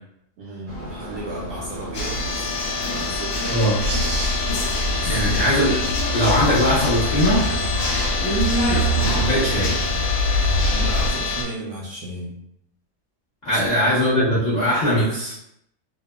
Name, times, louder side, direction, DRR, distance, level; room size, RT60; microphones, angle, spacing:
voice 1, 0.4-2.5 2.9-3.6 5.0-5.4 10.7-12.4, right 2 dB, 70° right, -5 dB, 0.8 m, -34 dB
sound 1, 0.7-9.4, left 1 dB, 40° right, 0.7 m, -36 dB
sound 2, 1.9-11.4, left 3 dB, 70° left, 0.9 m, -26 dB
sound 3, 3.8-11.1, left 1 dB, 90° right, 1.2 m, -24 dB
voice 2, 5.0-5.7 6.1-7.4 8.2-9.7 13.4-15.3, equal, 45° left, -10 dB, 0.6 m, -21 dB
2.8 x 2.0 x 2.2 m, 0.77 s
omnidirectional pair, 1.7 m